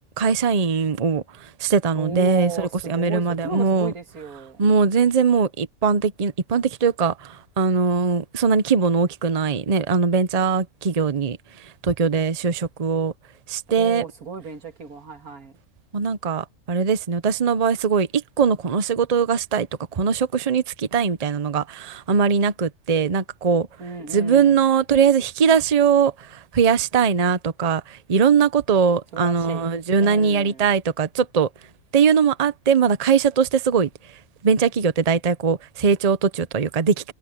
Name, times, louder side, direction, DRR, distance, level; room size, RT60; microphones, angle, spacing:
voice 1, 0.2-1.2 1.6-3.9 4.6-11.4 11.8-13.1 13.5-14.0 15.9-19.7 19.9-23.7 24.1-26.1 26.5-31.5 31.9-33.9 34.4-37.1, right 6 dB, 35° right, 0.8 m, -20 dB
voice 2, 1.9-4.6 13.8-15.6 23.8-24.7 29.1-30.7, right 5 dB, 90° right, 2.4 m, -35 dB
omnidirectional pair, 1.5 m